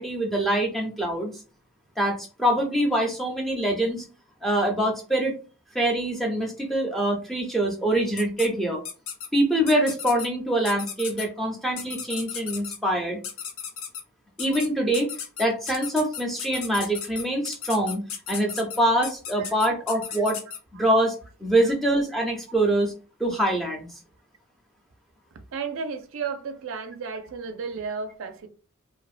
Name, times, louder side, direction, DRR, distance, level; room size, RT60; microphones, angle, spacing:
voice 1, 0.0-1.4 2.0-4.0 4.4-5.3 5.7-8.8 9.3-13.2 14.4-15.1 15.4-18.0 18.3-20.4 20.8-22.9 23.2-23.9, right 1 dB, ahead, 0.4 m, -24 dB
sound 1, 8.2-8.5 8.9-9.3 9.7-10.3 10.7-11.3 11.8-12.8 13.2-14.0 14.4-14.7 14.9-20.6, left 7 dB, 70° left, 0.5 m, -35 dB
voice 2, 25.5-28.5, right 5 dB, 65° right, 0.4 m, -33 dB
2.6 x 2.1 x 2.4 m
head